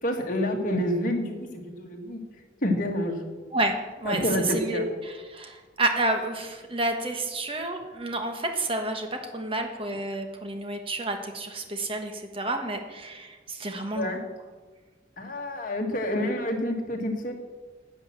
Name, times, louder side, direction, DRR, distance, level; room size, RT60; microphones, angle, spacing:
voice 1, 0.0-2.2 2.6-3.2 4.1-4.9 13.9-14.2 15.2-17.3, left 1 dB, 45° left, 2 dB, 1.8 m, -28 dB
voice 2, 3.5-4.2 4.5-14.1, right 2 dB, 30° right, 5 dB, 1.3 m, -30 dB
10.5 x 8.9 x 7.3 m, 1.4 s
head